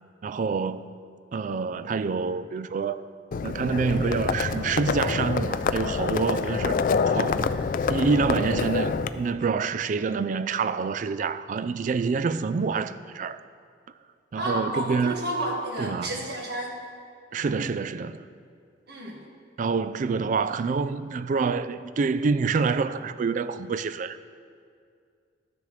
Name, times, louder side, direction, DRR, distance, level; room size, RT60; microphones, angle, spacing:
voice 1, 0.2-0.8 1.3-3.0 3.4-6.8 7.1-7.4 7.9-13.4 14.3-15.2 15.8-16.1 17.3-18.3 19.6-24.2, right 5 dB, 45° right, 0.3 m, -27 dB
Livestock farm animals working animals, 3.3-9.1, left 5 dB, 45° left, 0.3 m, -26 dB
voice 2, 14.4-16.7 18.9-19.2, right 1 dB, 60° right, 1.8 m, -31 dB
13.0 x 6.8 x 3.2 m
head